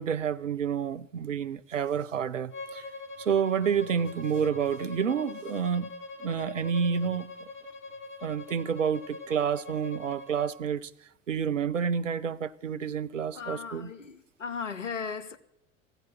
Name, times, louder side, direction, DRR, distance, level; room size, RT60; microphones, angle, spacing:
voice 1, 0.0-2.9 3.2-5.9 6.2-7.5 8.2-10.9 11.3-13.9, right 7 dB, 85° right, 0.6 m, -29 dB
Bowed string instrument, 2.5-10.5, left 3 dB, 35° left, 2.3 m, -43 dB
voice 2, 13.3-15.4, left 6 dB, 80° left, 1.0 m, -37 dB
16.0 x 14.0 x 5.8 m
figure-of-eight pair, 65°, 37 cm